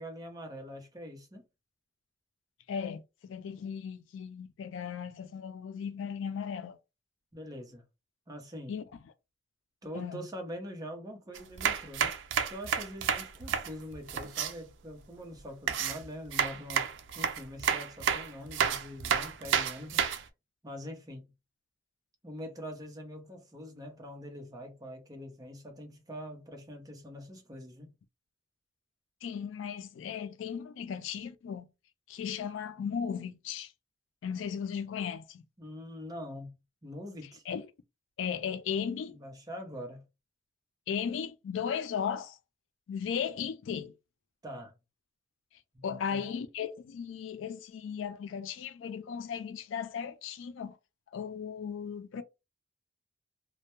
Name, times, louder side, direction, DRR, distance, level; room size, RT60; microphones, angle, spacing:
voice 1, 0.0-1.4 7.3-7.8 8.3-8.7 9.8-12.1 12.5-16.9 17.1-20.1 20.6-21.3 22.2-27.9 35.6-36.5 36.8-37.4 39.1-40.0 44.4-44.7 45.7-46.2, equal, 20° right, 0.6 m, -44 dB
voice 2, 2.7-6.8 8.7-8.8 9.9-10.2 29.2-31.7 32.1-33.7 34.2-35.4 37.5-37.7 38.2-39.2 40.9-42.4 42.9-43.9 45.8-50.8 51.1-52.2, left 7 dB, 75° left, 0.3 m, -36 dB
sound 1, 11.3-14.5 15.7-20.2, right 7 dB, 70° right, 0.4 m, -30 dB
2.1 x 2.1 x 2.9 m
head